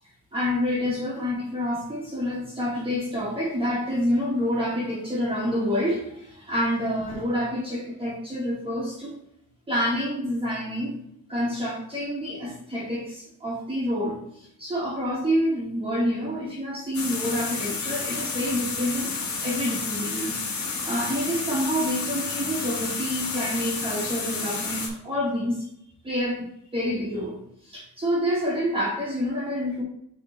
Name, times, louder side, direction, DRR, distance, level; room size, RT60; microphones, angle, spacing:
voice 1, 0.3-9.1 9.7-11.0 11.3-14.2 14.6-25.6 26.0-26.4 26.7-27.4 27.7-29.8, equal, 15° right, -5 dB, 1.5 m, -28 dB
sound 1, 16.9-24.9, left 4 dB, 55° left, 1.7 m, -31 dB
9.2 x 3.5 x 3.1 m, 0.74 s
wide cardioid pair, 175°, 34 cm